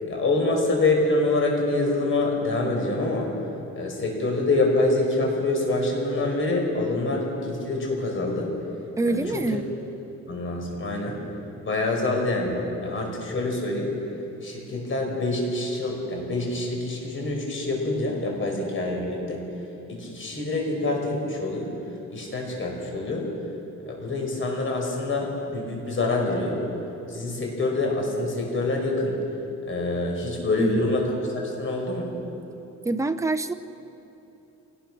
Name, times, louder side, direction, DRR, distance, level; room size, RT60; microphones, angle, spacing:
voice 1, 0.1-3.3 3.8-8.5 9.1-9.6 10.3-11.2 11.6-13.9 14.4-19.4 19.9-21.7 22.1-23.3 23.9-26.6 27.1-29.2 29.7-32.1, left 2 dB, 40° left, 0 dB, 5.1 m, -26 dB
voice 2, 9.0-9.7 30.6-30.7 32.8-33.5, right 2 dB, 10° right, 9 dB, 0.7 m, -25 dB
25.0 x 19.0 x 6.1 m, 3.0 s
cardioid pair, 140°, 30 cm